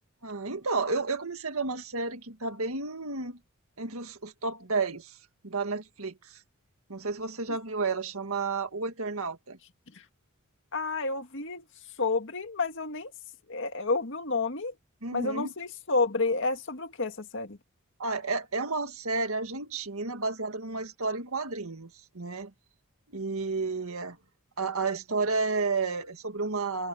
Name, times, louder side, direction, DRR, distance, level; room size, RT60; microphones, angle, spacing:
voice 1, 0.2-3.4 3.8-5.2 5.4-6.4 6.9-9.6 15.0-15.5 18.0-22.5 23.1-24.2 24.6-26.9, right 3 dB, 70° right, 1.9 m, -31 dB
voice 2, 10.7-11.6 12.0-13.1 13.5-14.7 15.1-17.6, left 3 dB, 55° left, 2.1 m, -30 dB
head